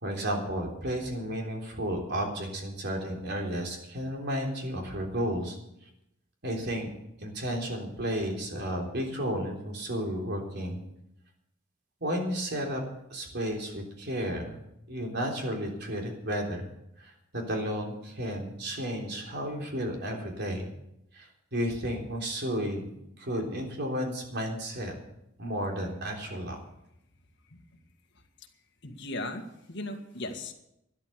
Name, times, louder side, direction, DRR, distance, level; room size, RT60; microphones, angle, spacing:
voice 1, 0.0-5.6 6.4-6.9 7.2-10.8 12.0-12.8 13.1-14.6 14.9-16.7 17.0-20.7 21.1-22.9 23.2-24.9 25.4-26.6, equal, 60° right, 1 dB, 3.5 m, -32 dB
voice 2, 28.8-30.5, left 2 dB, 65° left, 4 dB, 1.9 m, -37 dB
12.5 x 11.0 x 6.9 m, 0.81 s
head